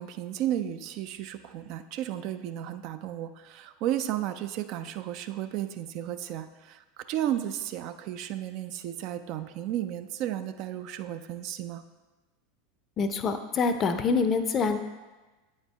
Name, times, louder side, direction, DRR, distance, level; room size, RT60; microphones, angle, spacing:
voice 1, 0.0-11.8, right 11 dB, 50° right, 10 dB, 0.3 m, -33 dB
voice 2, 13.0-14.8, left 4 dB, 35° left, 9 dB, 0.5 m, -26 dB
8.4 x 4.4 x 3.4 m, 1.2 s
figure-of-eight pair, 80°, 0 cm